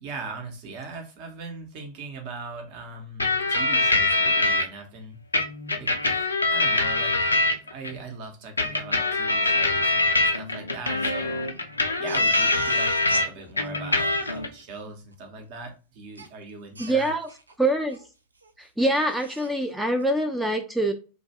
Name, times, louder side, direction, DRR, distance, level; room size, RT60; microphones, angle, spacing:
voice 1, 0.0-5.2 5.8-7.3 7.6-11.4 12.0-17.1, right 3 dB, 45° right, 0.8 m, -40 dB
sound 1, 3.2-4.6 5.3-7.9 8.6-13.3 13.6-14.5, left 2 dB, 80° left, 0.4 m, -23 dB
Crying sobbing, 12.1-13.3 13.7-13.8 14.0-14.4 16.2-16.3 16.8-17.5 17.9-18.1 18.4-18.5 18.8-19.5, right 2 dB, 75° right, 0.3 m, -36 dB
voice 2, 16.8-17.2 17.6-18.0 18.6-20.9, right 1 dB, 5° right, 0.3 m, -24 dB
2.2 x 2.2 x 2.8 m
figure-of-eight pair, 90°, 0 cm